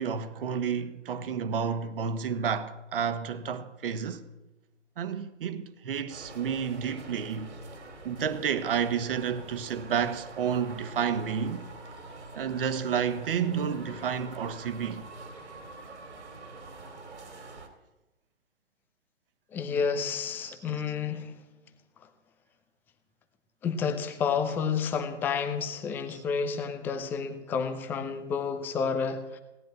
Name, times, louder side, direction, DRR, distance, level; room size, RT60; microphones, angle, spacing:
voice 1, 0.0-4.2 5.0-7.5 8.0-11.6 12.3-15.0 20.4-20.5 26.1-26.2, right 7 dB, 50° right, 1.5 m, -30 dB
sound 1, 6.1-17.7, right 3 dB, 65° right, 3.2 m, -46 dB
voice 2, 19.5-21.3 23.6-29.4, left 6 dB, 5° left, 0.5 m, -30 dB
17.5 x 10.5 x 7.6 m
figure-of-eight pair, 120°, 36 cm